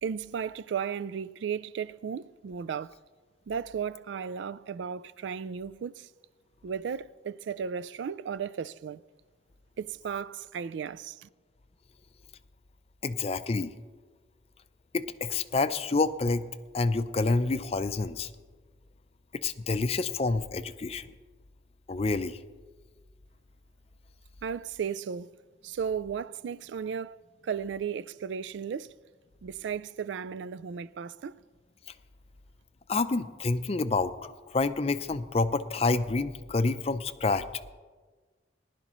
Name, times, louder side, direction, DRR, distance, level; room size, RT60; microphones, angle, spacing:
voice 1, 0.0-2.9 3.5-6.1 6.6-9.0 9.8-11.3 24.4-25.3 25.6-27.2 27.4-28.9 29.4-31.3, right 7 dB, 80° right, 0.3 m, -35 dB
voice 2, 13.0-13.7 14.9-16.4 16.7-18.3 19.3-21.1 21.9-22.4 32.9-37.4, left 3 dB, 35° left, 0.5 m, -28 dB
19.5 x 11.5 x 3.1 m
head